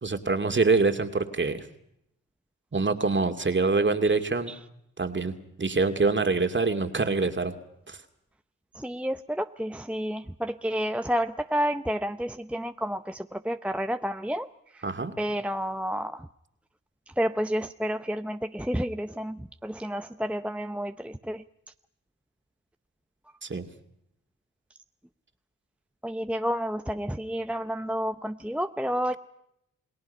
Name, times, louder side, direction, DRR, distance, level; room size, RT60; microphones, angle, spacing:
voice 1, 0.0-1.6 2.7-4.5 5.0-7.5 7.9-8.0 14.8-15.1 23.4-23.7, right 3 dB, 35° right, 7 dB, 2.4 m, -25 dB
voice 2, 8.8-14.5 14.7-14.8 15.2-16.3 17.2-21.4 26.0-29.1, equal, 5° right, 9 dB, 0.8 m, -30 dB
29.0 x 19.5 x 5.5 m, 0.78 s
cardioid pair, 55°, 32 cm